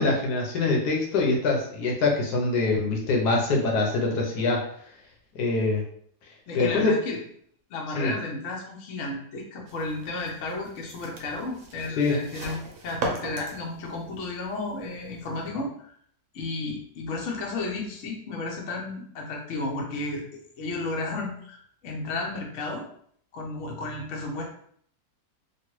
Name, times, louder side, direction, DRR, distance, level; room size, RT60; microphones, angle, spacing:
voice 1, 0.0-4.6 5.3-5.9 6.5-6.9 7.9-8.1 12.0-12.2, left 3 dB, 75° left, 0 dB, 1.3 m, -24 dB
voice 2, 6.5-7.2 7.7-15.9 16.3-21.6 21.8-22.8 23.3-24.4, left 2 dB, 60° left, 0 dB, 0.9 m, -33 dB
sound 1, 9.7-15.5, right 2 dB, 65° right, 1.0 m, -38 dB
3.0 x 2.5 x 3.0 m, 0.63 s
omnidirectional pair, 1.8 m